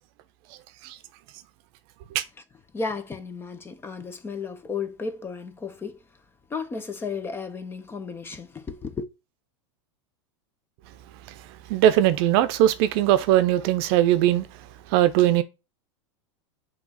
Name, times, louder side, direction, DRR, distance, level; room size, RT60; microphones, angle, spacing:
voice 1, 2.7-6.0 6.5-9.0, left 4 dB, 15° left, 0.7 m, -33 dB
voice 2, 11.7-14.5 14.9-15.4, right 12 dB, 55° right, 0.7 m, -20 dB
6.0 x 3.1 x 5.7 m
supercardioid pair, 135°, 16 cm